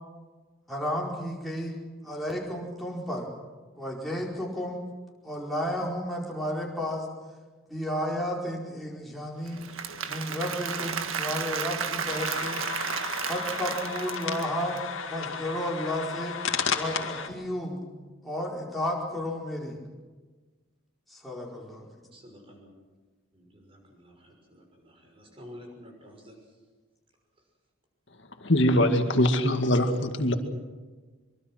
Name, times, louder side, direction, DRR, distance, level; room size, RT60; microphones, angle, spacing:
voice 1, 0.7-1.8 2.0-3.3 3.8-4.8 5.2-7.1 7.7-9.7 10.0-12.6 13.3-14.8 15.1-16.4 16.7-17.8 18.2-19.8 21.1-21.8, equal, ahead, -3 dB, 4.7 m, -32 dB
Applause / Crowd, 9.5-14.8, right 6 dB, 85° right, 1.7 m, -33 dB
sound 1, 12.1-17.3, left 6 dB, 80° left, 2.2 m, -33 dB
voice 2, 22.1-22.7 23.3-26.4, left 1 dB, 25° right, 2 dB, 6.1 m, -50 dB
voice 3, 28.4-30.3, left 1 dB, 65° left, 6 dB, 2.2 m, -22 dB
24.5 x 24.0 x 6.1 m, 1.3 s
head